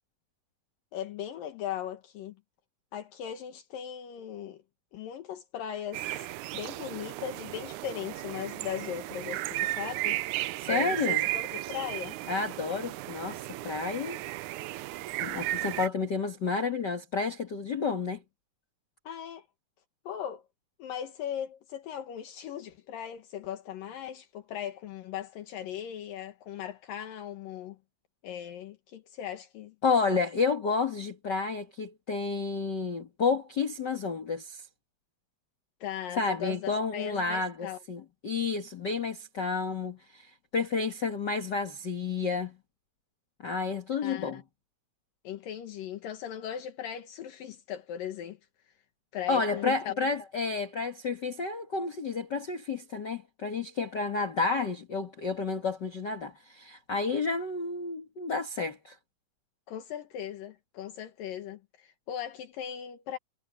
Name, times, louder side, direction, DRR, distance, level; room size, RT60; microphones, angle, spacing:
voice 1, 0.9-2.4 2.9-4.6 4.9-6.1 6.5-10.2 10.7-12.2 19.0-19.5 20.1-20.4 20.8-27.8 28.2-29.8 35.8-37.8 44.0-44.4 45.2-48.4 49.1-49.9 59.7-63.2, left 10 dB, 75° left, 3.0 m, -38 dB
sound 1, 5.9-15.9, right 17 dB, 80° right, 1.8 m, -34 dB
voice 2, 10.6-11.2 12.3-14.2 15.2-18.2 29.8-34.6 36.2-40.3 40.5-42.6 43.4-44.4 49.3-59.0, left 4 dB, 40° left, 1.7 m, -30 dB
omnidirectional pair, 4.0 m